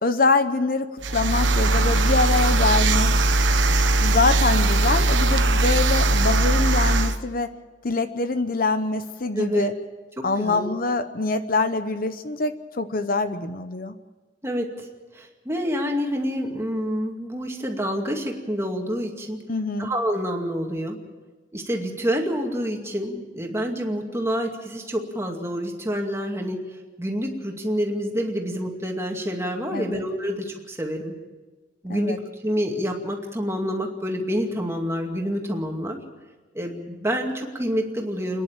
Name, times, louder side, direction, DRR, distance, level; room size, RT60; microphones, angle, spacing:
voice 1, 0.0-3.2 4.0-7.5 7.8-9.7 10.2-13.9 19.5-19.9 29.7-30.0 31.9-32.2, left 3 dB, 50° left, 10 dB, 0.8 m, -24 dB
sound 1, 1.0-7.2, right 2 dB, 85° right, 1.2 m, -20 dB
voice 2, 9.3-9.7 10.2-10.7 14.4-14.9 15.1-19.4 19.8-21.0 21.5-26.6 27.0-31.1 31.8-36.0 36.5-38.4, equal, 15° right, 1 dB, 2.3 m, -27 dB
28.5 x 10.5 x 9.0 m, 1.3 s
head